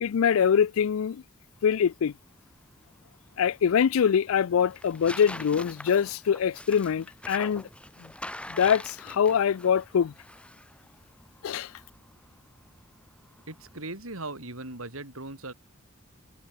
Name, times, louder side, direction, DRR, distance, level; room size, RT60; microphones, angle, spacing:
voice 1, 0.0-1.2 1.6-2.1 3.4-7.7 8.0-8.1 8.5-10.1 11.4-11.7, left 7 dB, 80° left, 0.4 m, -24 dB
Tearing, 1.6-13.8, left 1 dB, 5° left, 6.3 m, -45 dB
voice 2, 13.5-15.5, right 2 dB, 90° right, 5.4 m, -38 dB
head